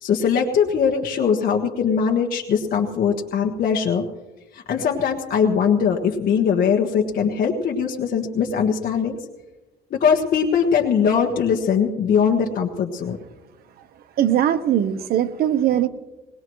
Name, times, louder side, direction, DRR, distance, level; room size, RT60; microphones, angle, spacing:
voice 1, 0.0-4.0 4.5-9.2 9.9-13.2, left 7 dB, 55° left, 1 dB, 1.4 m, -21 dB
voice 2, 14.2-15.9, right 11 dB, 65° right, 10 dB, 1.0 m, -20 dB
21.5 x 19.0 x 3.1 m, 1.1 s
cardioid pair, 110°, 17 cm